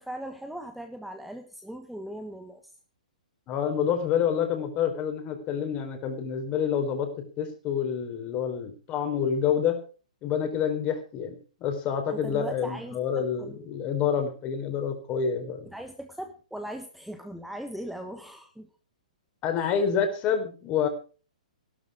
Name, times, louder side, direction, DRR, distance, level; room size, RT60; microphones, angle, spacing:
voice 1, 0.0-2.6 12.1-13.7 15.6-18.7 19.6-19.7, right 1 dB, ahead, 6 dB, 1.3 m, -39 dB
voice 2, 3.5-9.8 10.2-15.7 19.4-20.9, left 7 dB, 25° left, 6 dB, 4.3 m, -28 dB
16.5 x 12.5 x 4.9 m, 0.38 s
figure-of-eight pair, 115°, 4 cm